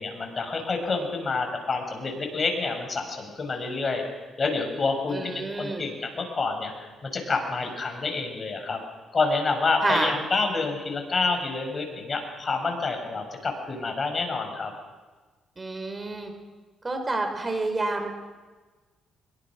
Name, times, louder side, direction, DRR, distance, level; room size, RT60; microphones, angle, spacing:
voice 1, 0.0-6.7 7.0-8.8 9.1-14.7, left 3 dB, 35° left, 4 dB, 5.9 m, -28 dB
voice 2, 5.1-5.9 9.8-10.1 15.6-16.3 16.8-18.1, right 2 dB, 25° right, 5 dB, 4.7 m, -28 dB
23.5 x 22.5 x 6.1 m, 1.3 s
cardioid pair, 90°, 0 cm